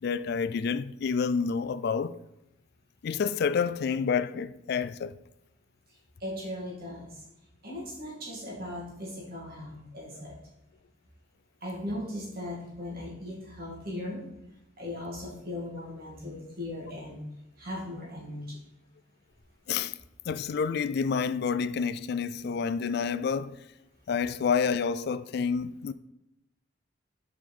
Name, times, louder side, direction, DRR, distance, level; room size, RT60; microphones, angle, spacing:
voice 1, 0.0-2.2 3.0-5.2 19.7-20.0 20.3-23.6 24.1-25.9, left 6 dB, 55° left, 0.3 m, -29 dB
voice 2, 6.2-7.2 7.6-10.4 11.6-14.2 14.8-17.2 17.6-18.6, left 1 dB, 50° right, 2.4 m, -38 dB
5.6 x 5.0 x 5.4 m
head